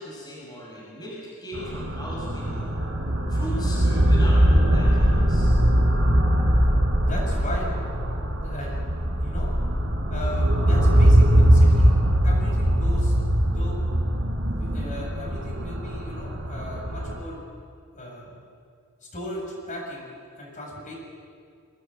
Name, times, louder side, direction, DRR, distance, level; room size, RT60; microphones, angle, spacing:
voice 1, 0.0-2.8 3.3-5.5, left 1 dB, 20° left, -6 dB, 6.4 m, -38 dB
sound 1, 1.5-17.2, equal, 60° right, 3.3 m, -21 dB
voice 2, 7.0-7.7 8.4-8.8 9.2-9.5 10.1-11.9 12.2-13.2 13.5-13.8 14.6-17.4 17.9-18.4 19.1-20.1 20.4-20.9, left 1 dB, 35° left, -2 dB, 7.3 m, -37 dB
23.5 x 18.5 x 9.2 m, 2.1 s
head